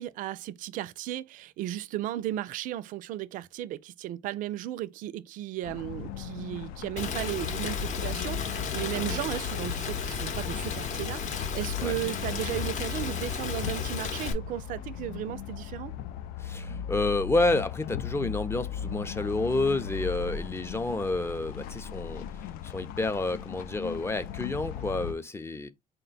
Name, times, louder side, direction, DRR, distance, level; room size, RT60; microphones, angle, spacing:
voice 1, 0.0-15.9, right 13 dB, 60° right, 0.4 m, -35 dB
sound 1, 5.6-25.1, left 8 dB, 75° left, 0.4 m, -38 dB
Rain, 7.0-14.3, left 6 dB, 55° left, 0.8 m, -33 dB
voice 2, 16.4-22.2 22.6-25.7, left 2 dB, 15° left, 0.5 m, -29 dB
4.2 x 2.2 x 3.9 m
supercardioid pair, 95°, 15 cm